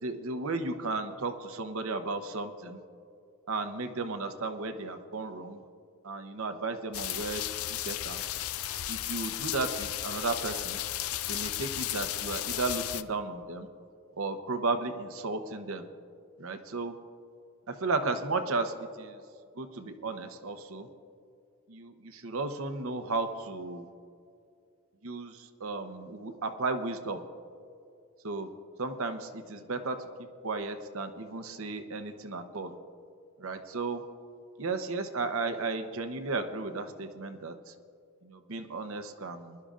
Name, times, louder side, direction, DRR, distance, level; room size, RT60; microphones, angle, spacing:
voice 1, 0.0-2.8 3.5-5.6 6.0-7.4 7.7-8.2 8.9-10.8 11.2-13.7 14.2-15.8 16.4-16.9 17.7-19.2 19.6-20.9 21.7-23.9 25.0-27.2 28.2-28.5 28.8-30.1 30.4-32.7 33.4-34.0 34.6-37.7 38.2-39.6, right 3 dB, 65° right, 8 dB, 0.9 m, -34 dB
sound 1, 6.9-13.0, left 13 dB, 70° left, 0.4 m, -34 dB
22.0 x 11.5 x 2.5 m, 2.4 s
head